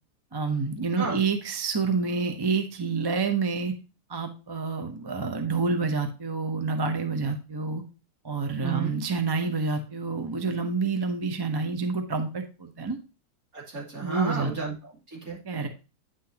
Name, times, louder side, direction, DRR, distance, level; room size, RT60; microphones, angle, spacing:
voice 1, 0.3-3.7 4.1-7.8 8.2-13.0 14.0-14.5 15.4-15.7, right 4 dB, 20° right, 6 dB, 0.6 m, -28 dB
voice 2, 8.6-8.9 13.5-15.4, right 5 dB, 65° right, -4 dB, 3.2 m, -33 dB
9.4 x 6.0 x 2.8 m, 0.31 s
omnidirectional pair, 1.6 m